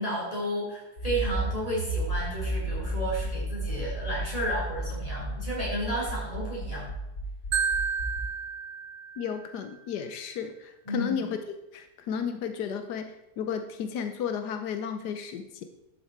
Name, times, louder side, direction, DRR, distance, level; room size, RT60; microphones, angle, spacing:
voice 1, 0.0-6.9 10.8-11.2, right 1 dB, 20° left, -6 dB, 4.8 m, -32 dB
Accelerating revving vroom, 1.0-8.2, right 1 dB, 75° left, 4.8 m, -32 dB
Marimba xylophone, 7.5-9.6, right 6 dB, 70° right, 0.5 m, -31 dB
voice 2, 9.2-11.4 11.7-15.6, left 7 dB, 90° left, 8 dB, 1.4 m, -33 dB
12.0 x 7.6 x 4.6 m, 0.92 s
omnidirectional pair, 1.7 m